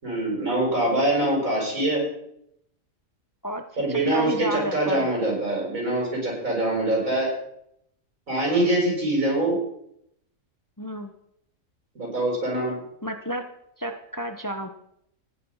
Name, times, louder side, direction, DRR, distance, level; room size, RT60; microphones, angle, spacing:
voice 1, 0.0-2.0 3.8-7.3 8.3-9.6 12.0-12.8, right 1 dB, 85° right, -2 dB, 7.2 m, -24 dB
voice 2, 3.9-5.1 10.8-11.1 13.0-13.4 13.8-14.7, right 1 dB, 15° left, 6 dB, 0.9 m, -31 dB
15.0 x 10.5 x 5.6 m, 0.75 s
omnidirectional pair, 1.4 m